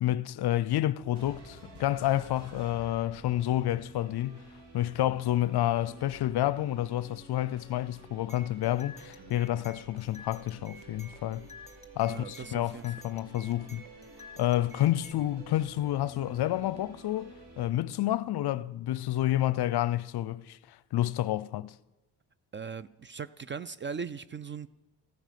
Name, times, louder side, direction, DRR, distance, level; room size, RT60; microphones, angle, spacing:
voice 1, 0.0-4.4 4.7-11.5 12.0-13.8 14.4-21.7, left 13 dB, 55° left, 0.7 m, -29 dB
sound 1, 1.1-17.7, right 2 dB, 60° right, 3.0 m, -52 dB
sound 2, 8.3-15.1, left 2 dB, 15° left, 1.8 m, -52 dB
voice 2, 12.0-12.8 22.5-24.7, right 6 dB, 25° right, 0.4 m, -39 dB
15.0 x 9.0 x 7.5 m
supercardioid pair, 75°, 46 cm